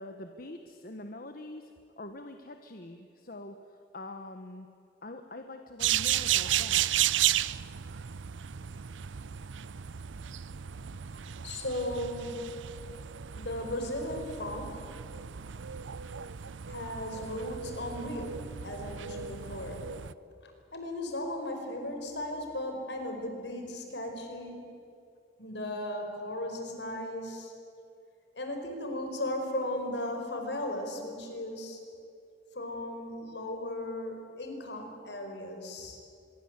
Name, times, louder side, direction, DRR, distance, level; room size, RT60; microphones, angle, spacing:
voice 1, 0.0-4.7 5.0-6.9, left 2 dB, 50° left, 6 dB, 1.2 m, -44 dB
sound 1, 5.8-20.1, right 11 dB, 90° right, 0.6 m, -33 dB
voice 2, 11.4-12.8 13.4-14.9 16.7-20.0 20.4-24.8 25.4-27.5 28.3-31.9 32.5-36.0, left 1 dB, 70° left, 4 dB, 5.0 m, -36 dB
25.0 x 22.5 x 8.2 m, 2.6 s
head